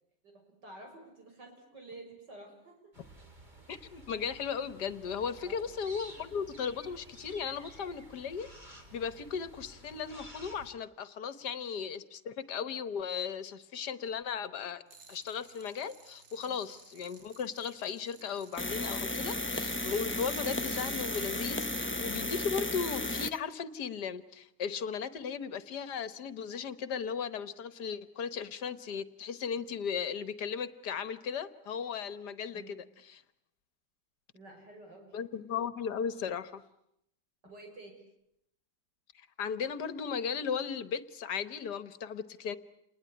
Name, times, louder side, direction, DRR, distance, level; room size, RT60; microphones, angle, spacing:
voice 1, 0.2-3.0 5.4-5.6 16.4-16.6 32.5-32.7 34.3-35.2 37.4-38.0, right 2 dB, 75° right, 3 dB, 6.9 m, -51 dB
sound 1, 2.9-10.7, right 1 dB, 25° right, 3.3 m, -52 dB
voice 2, 3.7-14.8 15.1-33.2 35.1-36.6 39.4-42.6, left 6 dB, 70° left, 14 dB, 1.8 m, -36 dB
sound 2, 14.9-21.9, right 5 dB, 50° right, 1.8 m, -53 dB
sound 3, 18.6-23.4, left 1 dB, 10° left, 0.6 m, -34 dB
28.5 x 20.5 x 9.8 m, 0.79 s
omnidirectional pair, 1.9 m